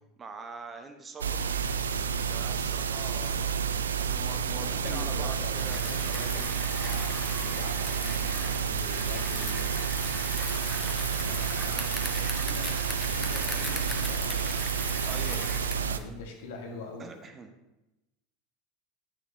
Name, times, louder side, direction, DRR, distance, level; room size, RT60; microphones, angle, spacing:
voice 1, 0.2-1.5 2.3-3.5 4.0-6.5 15.0-16.1 17.0-17.5, right 4 dB, 25° right, 6 dB, 0.8 m, -44 dB
sound 1, 1.2-16.0, right 7 dB, 85° right, 0.3 m, -30 dB
voice 2, 4.6-9.7 11.2-14.5 15.2-17.1, left 4 dB, 75° left, 1 dB, 1.3 m, -44 dB
Bicycle, 5.4-15.9, left 1 dB, 5° left, 0.8 m, -39 dB
7.9 x 6.0 x 2.6 m, 0.98 s
hypercardioid pair, 85°, 0 cm